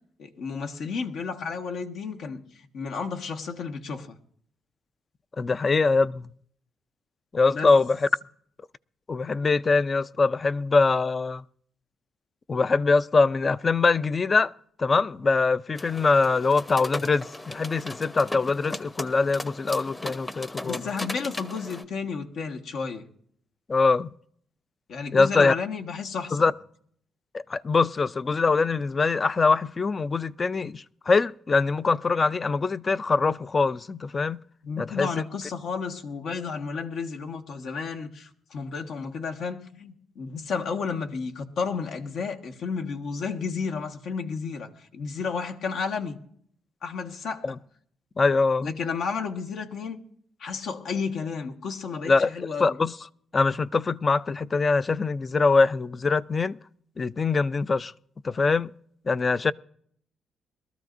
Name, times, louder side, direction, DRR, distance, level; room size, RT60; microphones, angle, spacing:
voice 1, 0.2-2.4 2.7-4.1 7.5-7.7 20.6-23.0 24.9-26.5 34.6-46.2 46.8-47.6 48.6-50.0 50.4-52.8, left 5 dB, 70° left, 1.4 m, -32 dB
voice 2, 5.4-6.3 7.3-8.1 9.1-11.4 12.5-14.5 14.8-20.8 23.7-24.1 25.1-25.5 26.3-26.5 27.5-34.4 34.8-35.1 47.4-47.5 48.2-48.7 52.1-52.3 52.6-52.9 53.3-56.6 57.0-57.9 58.2-58.7 59.1-59.5, left 4 dB, 35° left, 0.4 m, -23 dB
sound 1, 15.8-21.8, left 1 dB, 20° left, 0.9 m, -37 dB
22.5 x 13.5 x 2.6 m
cardioid pair, 90°, 0 cm